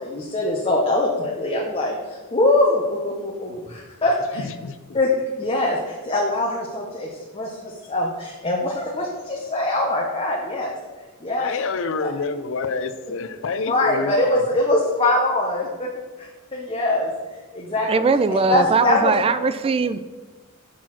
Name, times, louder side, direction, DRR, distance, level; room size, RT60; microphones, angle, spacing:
voice 1, 0.0-4.4 4.9-5.1 5.4-10.8 11.2-11.5 12.0-12.1 13.7-15.9 16.2-17.1 17.5-18.0 18.5-19.4, left 2 dB, 25° left, 0.8 m, -23 dB
voice 2, 4.3-5.0 11.4-14.4, left 4 dB, 65° left, 0.5 m, -28 dB
voice 3, 17.9-20.0, right 4 dB, 25° right, 0.3 m, -20 dB
6.2 x 4.6 x 5.8 m
head